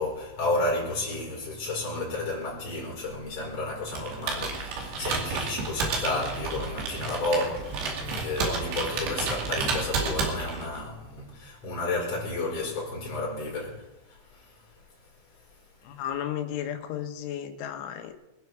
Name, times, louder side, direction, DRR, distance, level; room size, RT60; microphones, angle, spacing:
voice 1, 0.0-13.9, left 2 dB, 35° left, 6.0 m, -31 dB
Computer keyboard, 3.9-10.8, right 4 dB, 70° right, 4.7 m, -31 dB
voice 2, 15.9-18.1, left 10 dB, 90° left, 3.7 m, -33 dB
24.5 x 10.5 x 4.8 m
omnidirectional pair, 5.3 m